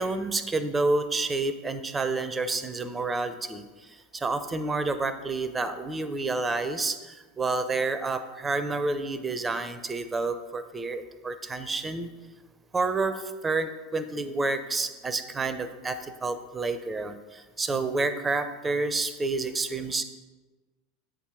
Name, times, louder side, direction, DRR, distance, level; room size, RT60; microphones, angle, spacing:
voice 1, 0.0-12.1 12.7-20.0, right 3 dB, 15° right, 11 dB, 0.6 m, -29 dB
8.1 x 6.2 x 3.7 m, 1.2 s
figure-of-eight pair, 80°, 0 cm